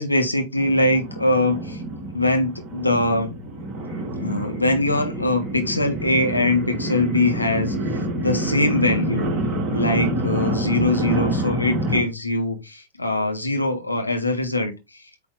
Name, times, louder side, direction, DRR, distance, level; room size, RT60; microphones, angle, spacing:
voice 1, 0.0-1.8 2.1-3.3 4.2-7.7 8.2-9.3 9.7-15.0, left 1 dB, 85° left, 1.4 m, -22 dB
sound 1, 0.6-12.0, right 1 dB, 30° right, 3.2 m, -27 dB
8.4 x 3.2 x 3.9 m
figure-of-eight pair, 90°, 0 cm